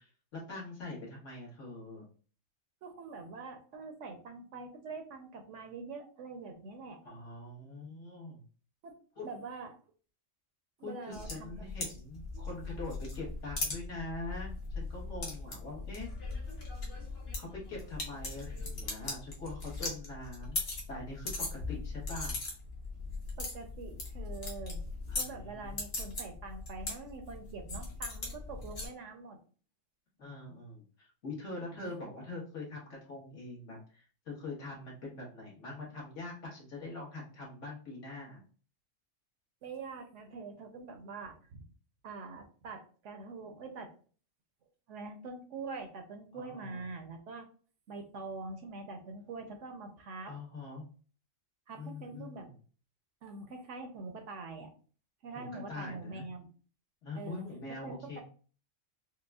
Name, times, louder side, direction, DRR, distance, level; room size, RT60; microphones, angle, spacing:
voice 1, 0.0-2.1 7.0-8.4 9.2-9.3 10.8-16.1 17.4-20.6 20.9-22.3 25.1-25.8 28.5-28.6 30.2-38.4 46.3-46.8 50.3-50.9 51.8-52.5 55.3-56.2 57.0-58.2, left 2 dB, 65° left, -4 dB, 1.6 m, -43 dB
voice 2, 2.8-7.0 8.8-8.9 9.2-9.8 10.8-11.5 12.3-12.4 23.4-24.8 25.2-29.4 31.8-32.1 39.6-41.6 42.0-43.9 44.9-47.5 47.9-50.3 51.7-52.5 53.2-54.7 55.2-56.5 57.2-57.4 57.8-58.2, right 3 dB, 70° right, 5 dB, 0.9 m, -44 dB
sound 1, 11.1-28.9, left 3 dB, 50° left, 1.1 m, -39 dB
4.7 x 2.1 x 2.3 m, 0.40 s
omnidirectional pair, 1.4 m